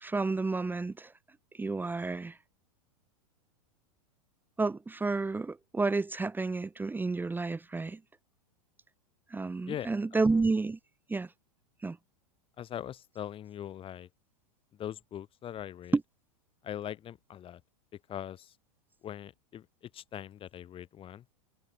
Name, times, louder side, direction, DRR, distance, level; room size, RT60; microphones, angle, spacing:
voice 1, 0.0-1.1 1.6-2.4 4.6-8.0 9.3-10.8 11.1-11.3 11.8-12.0 15.9-16.0, right 3 dB, 10° right, 1.3 m, -30 dB
voice 2, 9.7-10.2 12.6-14.1 14.7-16.0 16.6-17.6 17.9-18.5 19.0-21.2, left 10 dB, 30° left, 1.5 m, -41 dB
hypercardioid pair, 105°, 19 cm